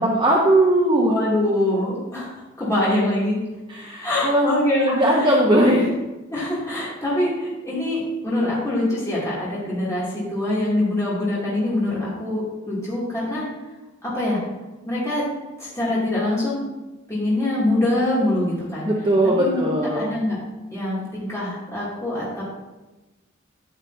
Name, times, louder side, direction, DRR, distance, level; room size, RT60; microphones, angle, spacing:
voice 1, 0.0-1.1 3.7-5.9 9.8-9.9 18.8-20.0, right 1 dB, 25° right, -3 dB, 1.0 m, -19 dB
voice 2, 1.1-2.3 2.6-3.4 4.0-5.3 6.3-13.5 14.0-14.4 14.8-15.3 15.6-16.6 17.1-18.9 19.4-20.4 20.7-22.4, left 1 dB, 15° left, -9 dB, 2.8 m, -24 dB
10.0 x 9.8 x 2.8 m, 1.1 s
head